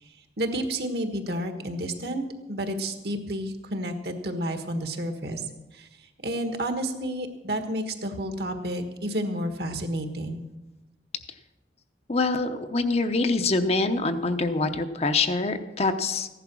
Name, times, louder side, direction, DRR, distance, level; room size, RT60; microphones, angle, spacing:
voice 1, 0.4-5.4 5.7-5.9 6.2-10.4, right 1 dB, 60° right, 6 dB, 1.5 m, -30 dB
voice 2, 12.1-16.3, left 3 dB, 35° left, 8 dB, 0.8 m, -25 dB
15.0 x 11.0 x 6.1 m, 1.1 s
head